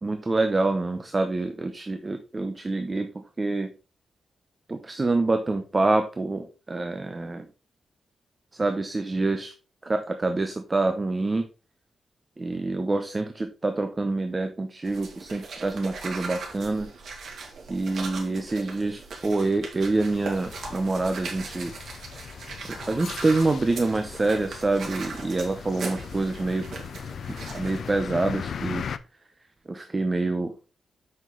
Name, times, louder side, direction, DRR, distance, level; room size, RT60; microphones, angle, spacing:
voice 1, 0.0-3.1 3.4-3.7 4.7-7.5 8.5-9.5 9.8-11.5 12.4-16.9 17.7-21.7 22.7-26.7 27.6-28.8 29.7-30.5, right 2 dB, 20° right, 7 dB, 0.7 m, -26 dB
sound 1, 14.8-27.9, right 4 dB, 60° right, 2.4 m, -39 dB
sound 2, 20.0-29.0, left 7 dB, 55° left, 0.5 m, -38 dB
7.5 x 6.0 x 3.8 m, 0.33 s
wide cardioid pair, 160°, 0 cm